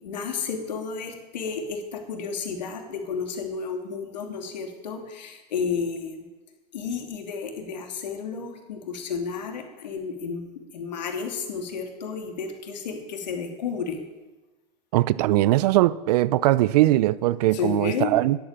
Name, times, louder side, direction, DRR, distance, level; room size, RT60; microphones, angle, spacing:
voice 1, 0.0-6.2 6.7-14.0 17.5-18.1, left 5 dB, 85° left, 2.9 m, -32 dB
voice 2, 14.9-18.4, right 16 dB, 70° right, 0.6 m, -20 dB
11.5 x 10.5 x 8.8 m
hypercardioid pair, 110°, 21 cm